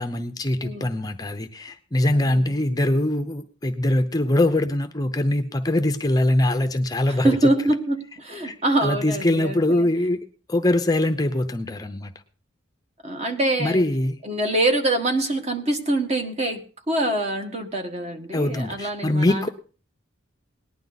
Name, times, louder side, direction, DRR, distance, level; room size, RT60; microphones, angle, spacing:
voice 1, 0.0-7.3 8.4-10.2 10.5-12.1 13.6-14.2 18.3-19.5, left 1 dB, 20° left, 7 dB, 0.7 m, -23 dB
voice 2, 2.1-2.6 7.1-9.9 13.0-13.8 14.2-16.6 16.9-19.5, right 1 dB, 35° right, 5 dB, 1.6 m, -24 dB
18.5 x 10.5 x 4.1 m, 0.39 s
head